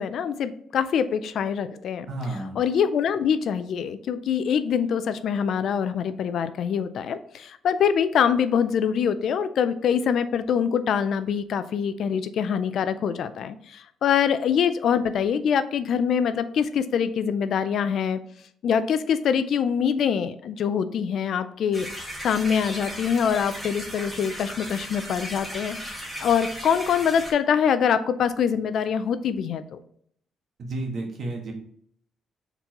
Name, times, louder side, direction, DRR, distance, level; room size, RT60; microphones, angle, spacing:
voice 1, 0.0-2.1 2.6-18.2 18.6-21.9 22.2-29.8, left 7 dB, 65° left, 12 dB, 0.4 m, -24 dB
voice 2, 2.1-2.6 30.6-31.5, right 2 dB, 55° right, 2 dB, 1.4 m, -31 dB
sound 1, 21.7-27.3, equal, 5° right, 1.8 m, -36 dB
4.4 x 4.0 x 2.9 m, 0.65 s
cardioid pair, 90°, 0 cm